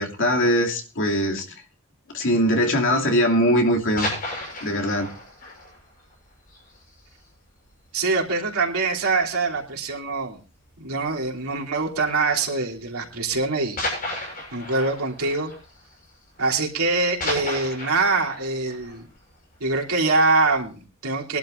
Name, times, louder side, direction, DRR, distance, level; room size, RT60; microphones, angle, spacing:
voice 1, 0.0-1.4 2.1-4.1 4.6-5.1 5.4-5.5, equal, 60° left, 2.7 m, -21 dB
sound 1, 3.7-7.3 7.6-7.7 8.1-8.3 8.6-8.7 9.5-10.0 11.2-11.4 12.3-12.4 13.8-16.6 16.8-19.9 20.4-20.5, left 1 dB, 40° left, 7.6 m, -34 dB
voice 2, 7.9-10.4 10.8-13.8 14.1-14.2 14.5-15.5 16.4-19.1 19.6-21.4, right 3 dB, 90° right, 3.3 m, -24 dB
23.0 x 11.5 x 2.6 m
head